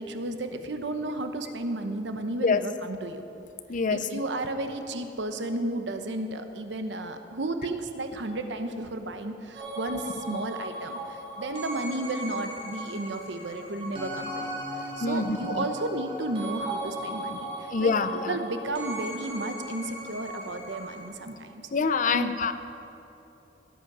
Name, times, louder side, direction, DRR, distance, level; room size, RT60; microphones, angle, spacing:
voice 1, 0.0-3.2 3.9-21.6 22.1-22.4, right 2 dB, 70° right, 7 dB, 1.0 m, -33 dB
voice 2, 3.7-4.2 10.3-10.4 15.0-15.6 17.7-18.4 21.7-22.5, left 4 dB, 45° left, 11 dB, 0.6 m, -26 dB
sound 1, 9.5-21.1, right 1 dB, 30° right, 2.6 m, -37 dB
16.5 x 8.1 x 6.1 m, 3.0 s
head